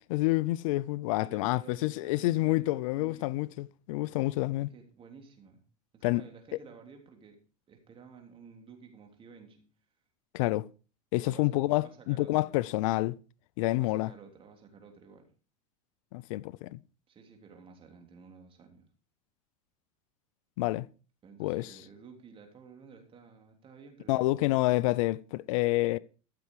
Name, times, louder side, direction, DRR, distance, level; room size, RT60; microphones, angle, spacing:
voice 1, 0.1-4.7 6.0-6.2 10.3-10.7 11.1-13.2 13.6-14.1 16.1-16.8 20.6-20.9 21.4-21.7 24.1-26.0, left 19 dB, 70° left, 0.5 m, -28 dB
voice 2, 1.1-3.4 4.7-5.6 5.9-7.4 7.7-9.7 11.2-12.6 13.8-15.3 17.1-18.8 21.2-24.6, right 6 dB, 30° right, 3.3 m, -53 dB
14.0 x 6.9 x 4.8 m
supercardioid pair, 110°, 18 cm